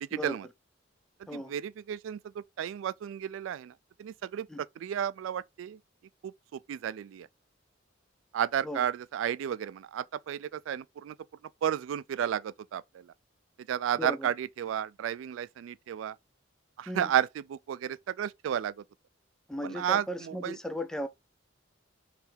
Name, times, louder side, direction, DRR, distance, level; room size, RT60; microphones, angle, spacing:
voice 1, 0.0-0.5 1.3-5.8 6.2-7.3 8.3-11.2 11.6-13.1 13.6-16.2 16.8-18.8 19.6-20.6, right 9 dB, 85° right, 0.3 m, -33 dB
voice 2, 14.0-14.3 16.9-17.1 19.5-21.1, equal, 5° left, 0.4 m, -36 dB
3.5 x 3.2 x 4.4 m
head